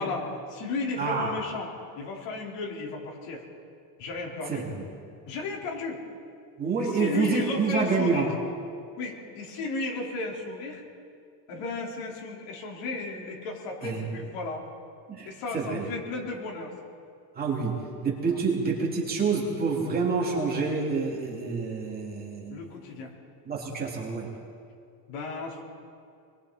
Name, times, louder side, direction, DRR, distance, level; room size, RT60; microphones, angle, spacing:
voice 1, 0.0-3.4 4.0-4.7 5.3-6.0 6.8-8.3 9.0-10.8 11.5-14.7 15.2-16.7 18.2-18.4 22.5-23.1 25.1-25.6, left 3 dB, 70° left, -1 dB, 4.6 m, -34 dB
voice 2, 1.0-1.3 4.5-4.6 6.6-8.3 13.8-14.0 15.1-15.8 17.3-22.6 23.5-24.3, right 4 dB, 20° right, -2 dB, 2.9 m, -28 dB
29.0 x 22.0 x 4.3 m, 2.3 s
cardioid pair, 175°, 46 cm